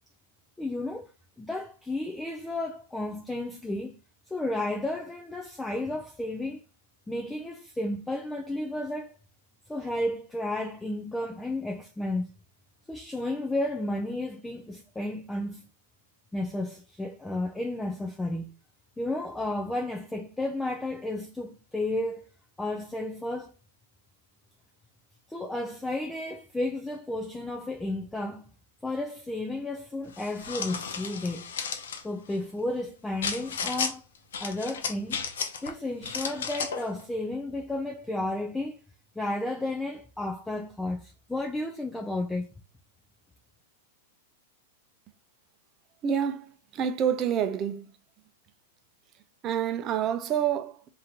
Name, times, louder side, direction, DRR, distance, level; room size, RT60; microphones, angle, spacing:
voice 1, 0.6-1.1 1.4-3.9 4.3-6.6 7.1-9.1 9.7-12.3 12.9-15.7 16.3-18.5 19.0-22.3 22.6-23.5 25.3-28.4 28.8-31.5 32.0-34.0 34.4-35.2 35.6-38.8 39.2-42.5, left 1 dB, 5° left, 0.5 m, -32 dB
sound 1, 30.1-32.0 33.2-33.9 34.3-35.7 36.0-36.9, left 6 dB, 80° left, 0.7 m, -33 dB
voice 2, 46.0-47.9 49.4-50.9, right 8 dB, 35° right, 0.6 m, -28 dB
3.6 x 2.7 x 4.1 m
hypercardioid pair, 130°, 0 cm